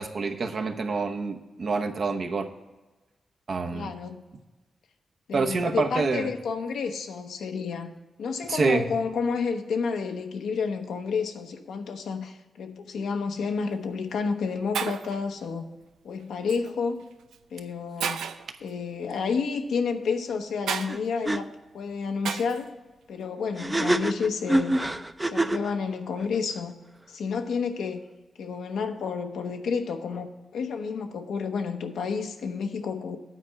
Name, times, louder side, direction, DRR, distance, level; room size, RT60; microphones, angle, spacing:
voice 1, 0.0-2.5 3.5-3.9 5.3-6.3 8.5-8.8, right 4 dB, 60° right, 5 dB, 0.8 m, -27 dB
voice 2, 3.7-4.2 5.3-15.7 16.0-17.0 17.5-18.2 18.6-22.7 23.1-24.8 25.2-26.8 27.1-28.0 28.4-33.2, left 5 dB, 85° left, 5 dB, 0.8 m, -30 dB
Shatter, 13.5-13.7 14.4-14.5 14.7-15.2 16.5-16.7 17.3-17.4 18.0-18.5 20.7-20.9 22.2-22.6, right 7 dB, 90° right, 0.4 m, -31 dB
sound 1, 20.9-21.0 21.3-21.4 23.6-25.7, right 1 dB, 20° right, 0.5 m, -25 dB
9.2 x 4.5 x 7.2 m, 1.2 s
supercardioid pair, 50°, 0 cm